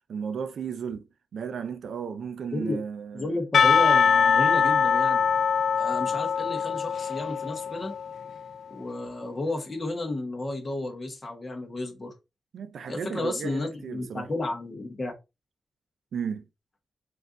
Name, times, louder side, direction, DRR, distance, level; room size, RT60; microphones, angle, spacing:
voice 1, 0.1-1.1 1.3-3.4 12.5-14.3 16.1-16.5, right 7 dB, 85° right, 0.4 m, -34 dB
voice 2, 3.1-5.3 5.8-7.9 8.7-12.1 12.9-15.1, left 2 dB, 25° left, 1.2 m, -32 dB
Percussion / Church bell, 3.5-8.3, left 6 dB, 80° left, 0.3 m, -23 dB
4.3 x 2.6 x 3.7 m
wide cardioid pair, 160°, 0 cm